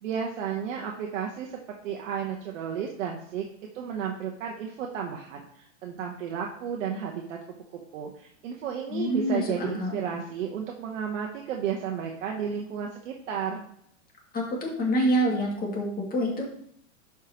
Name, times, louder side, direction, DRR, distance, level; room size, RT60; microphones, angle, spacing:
voice 1, 0.0-1.6 1.8-3.4 3.7-13.6, right 7 dB, 70° right, 0 dB, 1.1 m, -33 dB
voice 2, 8.9-10.0 14.3-16.4, equal, 25° left, -1 dB, 2.4 m, -27 dB
11.0 x 4.8 x 3.0 m, 0.69 s
hypercardioid pair, 115°, 38 cm